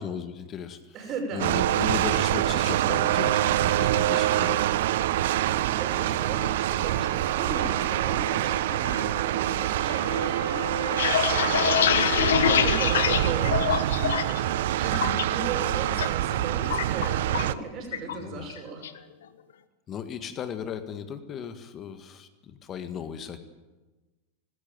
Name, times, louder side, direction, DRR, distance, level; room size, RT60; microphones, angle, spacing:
voice 1, 0.0-4.9 11.5-11.9 18.1-18.5 19.9-23.4, left 8 dB, 30° left, 10 dB, 1.8 m, -37 dB
voice 2, 0.9-1.9 5.3-11.8 12.1-18.8, right 4 dB, 35° right, 3 dB, 6.3 m, -37 dB
sound 1, 1.3-4.7 5.1-11.9, right 2 dB, 80° right, 4.1 m, -39 dB
sound 2, 1.4-17.5, right 13 dB, 55° right, 0.6 m, -25 dB
sound 3, 10.7-14.4 14.7-15.2 15.6-16.1 16.3-17.6 17.9-18.2 18.5-19.0, left 9 dB, 60° left, 1.2 m, -25 dB
19.0 x 17.0 x 9.2 m, 1.2 s
figure-of-eight pair, 90°, 0 cm